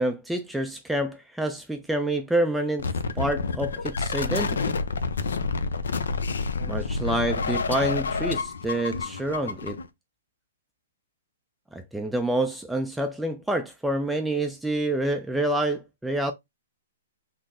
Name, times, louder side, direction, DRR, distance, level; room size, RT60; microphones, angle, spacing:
voice 1, 0.0-4.7 6.7-9.8 11.7-16.3, right 1 dB, 5° right, 0.4 m, -27 dB
sound 1, 2.8-9.9, left 4 dB, 80° left, 0.5 m, -28 dB
3.8 x 2.0 x 3.7 m
hypercardioid pair, 135°, 0 cm